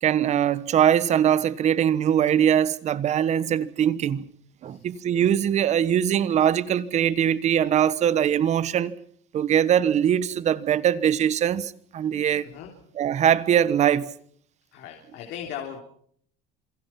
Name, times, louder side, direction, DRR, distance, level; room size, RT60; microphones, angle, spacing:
voice 1, 0.0-4.3 4.6-9.0 9.3-12.5 13.0-14.1, right 9 dB, 40° right, 1.2 m, -22 dB
voice 2, 14.7-15.8, left 9 dB, 65° left, 3.6 m, -37 dB
27.0 x 24.0 x 5.9 m
cardioid pair, 150°, 19 cm